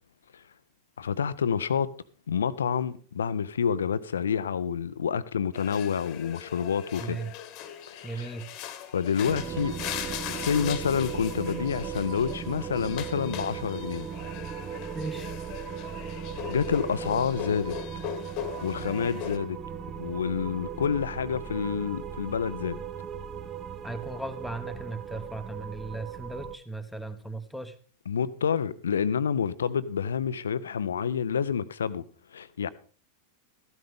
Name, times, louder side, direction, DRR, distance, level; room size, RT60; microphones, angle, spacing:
voice 1, 1.0-1.9 2.3-7.2 7.9-8.3 8.9-9.7 10.3-14.1 16.5-17.7 18.6-19.6 20.0-22.8 28.1-32.0 32.3-32.7, left 7 dB, 70° left, 0.5 m, -28 dB
sound 1, 5.5-19.4, left 10 dB, 40° left, 1.3 m, -40 dB
voice 2, 7.0-7.3 8.0-8.5 14.9-15.3 23.8-27.7, right 2 dB, ahead, 1.1 m, -37 dB
sound 2, 9.2-26.6, right 8 dB, 25° right, 0.7 m, -37 dB
14.0 x 12.0 x 3.6 m
figure-of-eight pair, 90°, 0 cm